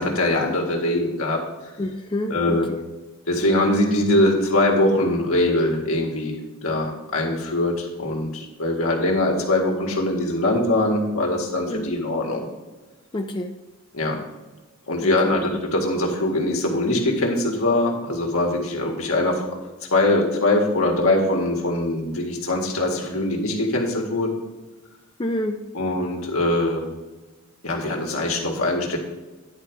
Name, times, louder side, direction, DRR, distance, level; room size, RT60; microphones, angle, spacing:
voice 1, 0.0-1.4 2.3-2.7 3.3-12.5 13.9-14.2 14.9-19.6 19.9-24.4 25.7-26.8 27.6-29.0, left 1 dB, 75° left, 1 dB, 1.9 m, -22 dB
voice 2, 1.8-2.8 11.7-12.0 13.1-13.5 15.0-15.4 25.2-25.6, left 1 dB, 25° left, 3 dB, 0.5 m, -28 dB
10.5 x 4.7 x 5.4 m, 1.2 s
head